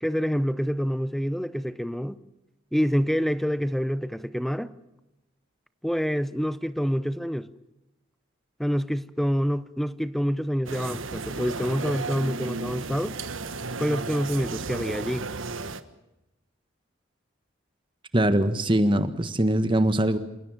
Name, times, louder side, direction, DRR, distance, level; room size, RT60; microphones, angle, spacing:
voice 1, 0.0-2.2 2.7-4.7 5.8-7.5 8.6-13.2 13.8-15.3, equal, ahead, 0.8 m, -27 dB
sound 1, 10.7-15.8, right 3 dB, 80° right, 1.4 m, -34 dB
voice 2, 18.1-20.2, right 1 dB, 25° right, 1.5 m, -22 dB
28.0 x 17.5 x 7.4 m
head